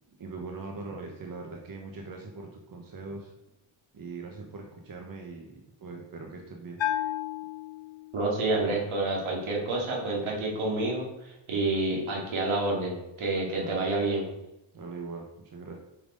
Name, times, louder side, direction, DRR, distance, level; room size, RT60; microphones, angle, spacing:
voice 1, 0.1-3.3 3.9-6.8 13.5-13.8 14.7-15.7, right 3 dB, 45° right, 1 dB, 1.2 m, -41 dB
Bell, 6.8-8.4, left 12 dB, 70° left, 1.0 m, -32 dB
voice 2, 8.1-14.3, right 2 dB, 75° right, -2 dB, 2.5 m, -29 dB
7.2 x 5.9 x 3.9 m, 0.89 s
cardioid pair, 100°, 48 cm